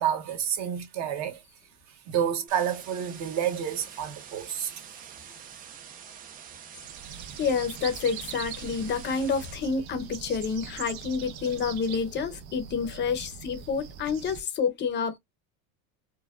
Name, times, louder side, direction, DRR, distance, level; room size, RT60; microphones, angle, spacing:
voice 1, 0.0-1.4 2.1-4.8, right 9 dB, 40° right, 1.1 m, -29 dB
sound 1, 2.5-9.5, right 8 dB, 20° right, 0.3 m, -46 dB
sound 2, 6.8-14.4, right 8 dB, 80° right, 0.9 m, -42 dB
voice 2, 7.4-15.2, left 5 dB, 25° left, 0.7 m, -29 dB
4.4 x 2.2 x 2.3 m
supercardioid pair, 140°, 41 cm